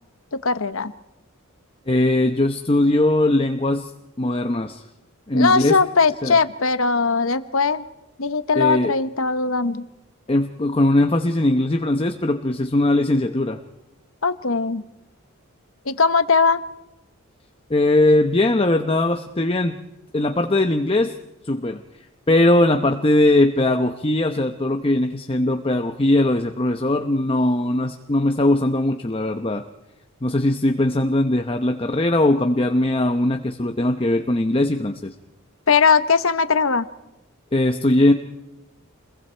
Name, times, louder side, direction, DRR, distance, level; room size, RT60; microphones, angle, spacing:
voice 1, 0.4-0.9 5.3-7.8 8.2-9.8 14.2-14.9 15.9-16.6 35.7-36.9, left 4 dB, 65° left, 12 dB, 1.0 m, -19 dB
voice 2, 1.9-3.9 4.2-4.8 5.3-5.8 6.2-6.4 8.5-8.9 10.3-13.6 17.7-19.8 20.1-21.1 21.4-21.8 22.3-29.6 30.2-35.1 37.5-38.1, left 1 dB, 25° left, 6 dB, 0.9 m, -20 dB
28.5 x 22.0 x 4.5 m, 0.94 s
head